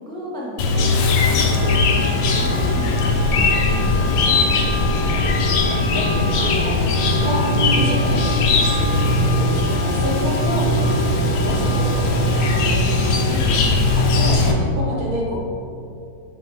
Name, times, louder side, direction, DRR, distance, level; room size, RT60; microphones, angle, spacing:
voice 1, 0.0-4.3 13.5-14.2, equal, 5° left, -5 dB, 0.5 m, -34 dB
Chirp tweet, 0.6-14.5, left 2 dB, 75° left, 1.3 m, -19 dB
Wind instrument woodwind instrument, 0.7-14.8, left 1 dB, 25° right, 1.2 m, -30 dB
voice 2, 4.9-13.7 14.0-15.4, equal, 60° right, -3 dB, 1.4 m, -29 dB
5.7 x 5.5 x 3.0 m, 2.7 s
omnidirectional pair, 1.9 m